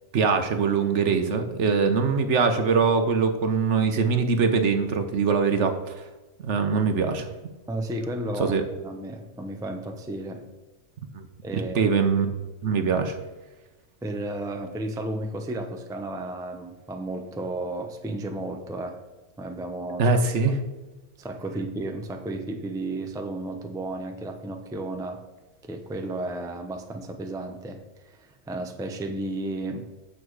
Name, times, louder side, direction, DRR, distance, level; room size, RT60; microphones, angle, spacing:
voice 1, 0.1-5.7 6.4-7.3 8.4-8.6 11.1-11.3 11.5-12.3 12.6-13.2 20.0-20.5, right 5 dB, 60° right, 7 dB, 1.2 m, -22 dB
voice 2, 7.7-10.4 11.4-11.9 14.0-19.0 19.4-20.2 20.5-20.6 21.2-25.2 25.6-29.9, right 1 dB, 5° right, 5 dB, 0.5 m, -33 dB
8.5 x 6.7 x 4.7 m, 1.1 s
omnidirectional pair, 1.4 m